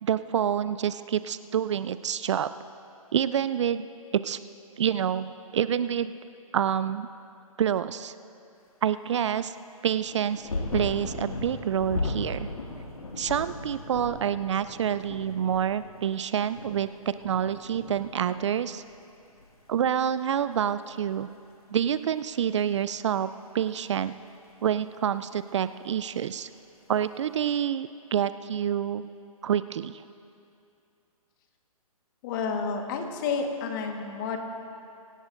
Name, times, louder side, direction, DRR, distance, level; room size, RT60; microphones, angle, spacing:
voice 1, 0.0-2.5 3.1-3.9 4.1-4.4 4.8-6.2 6.5-7.1 7.6-8.1 8.8-9.6 9.8-12.5 13.2-18.8 19.7-21.3 21.7-23.3 23.5-24.1 24.6-26.5 26.9-29.1 29.4-30.0, right 9 dB, 50° right, 14 dB, 0.4 m, -27 dB
sound 1, 9.9-19.0 19.2-20.1 21.1-21.2, left 2 dB, 75° left, 2.0 m, -37 dB
voice 2, 32.2-34.4, left 5 dB, 35° left, 4 dB, 1.4 m, -30 dB
23.5 x 17.0 x 2.6 m, 2.5 s
figure-of-eight pair, 135°, 19 cm